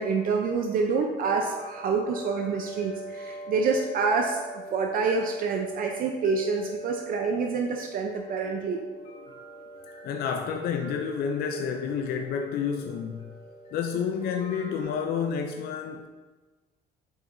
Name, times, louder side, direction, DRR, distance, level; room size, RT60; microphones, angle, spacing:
voice 1, 0.0-8.8, right 4 dB, 60° right, 2 dB, 0.6 m, -27 dB
sound 1, 1.2-14.8, right 1 dB, 35° left, 1.2 m, -43 dB
voice 2, 9.0-9.3 10.0-13.3 13.7-16.1, left 7 dB, 65° left, 4 dB, 0.5 m, -30 dB
7.7 x 4.8 x 2.6 m, 1.3 s
cardioid pair, 110°, 17 cm